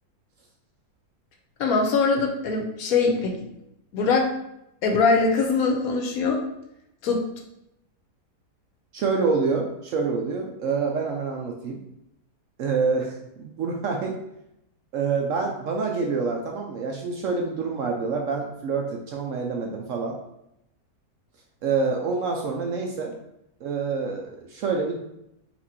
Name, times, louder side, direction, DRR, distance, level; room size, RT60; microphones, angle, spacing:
voice 1, 1.6-3.3 3.9-4.3 4.8-6.4 7.0-7.2, left 4 dB, 70° left, 3 dB, 1.0 m, -22 dB
voice 2, 8.9-11.8 12.6-14.2 14.9-20.2 21.6-23.1 23.6-25.0, right 4 dB, 70° right, 1 dB, 0.8 m, -27 dB
4.3 x 2.5 x 4.1 m, 0.82 s
omnidirectional pair, 1.7 m